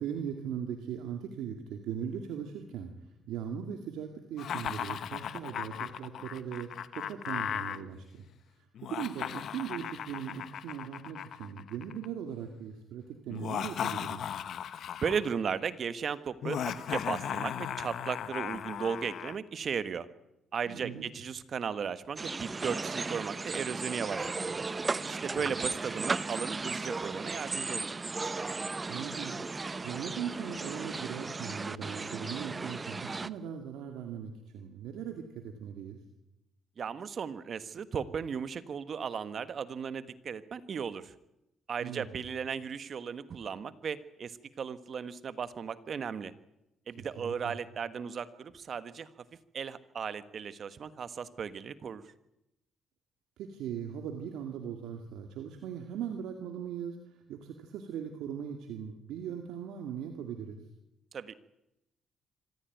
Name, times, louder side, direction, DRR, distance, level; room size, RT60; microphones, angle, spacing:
voice 1, 0.0-2.9 3.3-6.7 7.0-8.2 8.8-14.2 20.7-21.1 25.3-25.4 28.9-36.0 41.8-42.1 47.0-47.5 53.4-57.0 57.3-60.6, right 8 dB, 85° right, 4 dB, 2.2 m, -39 dB
Laughter, 4.4-7.8 8.8-12.1 13.3-15.3 16.4-19.4, left 9 dB, 70° left, 1.1 m, -37 dB
voice 2, 15.0-20.1 20.5-24.6 25.0-27.9 36.8-41.1 41.7-46.3 46.9-49.1 49.5-52.0 61.1-61.4, right 6 dB, 50° right, 14 dB, 1.4 m, -36 dB
sound 1, 22.2-33.3, right 3 dB, 25° right, 0.9 m, -36 dB
25.5 x 15.0 x 9.3 m, 0.91 s
cardioid pair, 90°, 0 cm